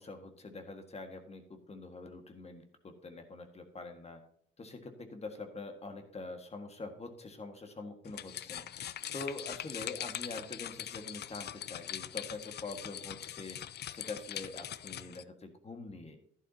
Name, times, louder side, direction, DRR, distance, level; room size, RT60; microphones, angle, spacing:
voice 1, 0.0-4.2 4.6-13.6 13.9-16.2, left 3 dB, 30° left, 6 dB, 1.7 m, -45 dB
sound 1, 8.1-15.2, left 11 dB, 55° left, 0.5 m, -42 dB
11.0 x 11.0 x 2.8 m, 0.66 s
cardioid pair, 90°, 20 cm